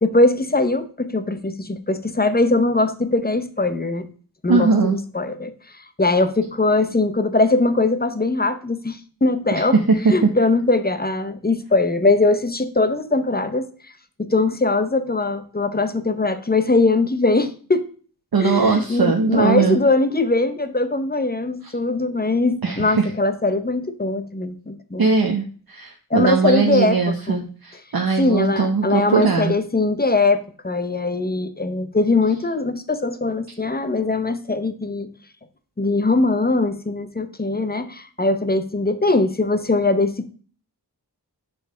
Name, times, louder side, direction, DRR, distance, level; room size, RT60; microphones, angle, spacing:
voice 1, 0.0-4.1 4.4-5.5 6.0-9.8 10.1-13.7 14.2-17.8 18.4-25.1 26.1-27.5 28.2-35.1 35.8-40.3, left 2 dB, 25° left, 10 dB, 0.7 m, -21 dB
voice 2, 4.5-5.0 9.5-9.6 9.9-10.1 18.3-19.8 21.6-21.7 22.6-23.1 25.0-29.5, right 4 dB, 60° right, 2 dB, 0.8 m, -20 dB
5.2 x 4.7 x 4.9 m, 0.42 s
wide cardioid pair, 50°, 40 cm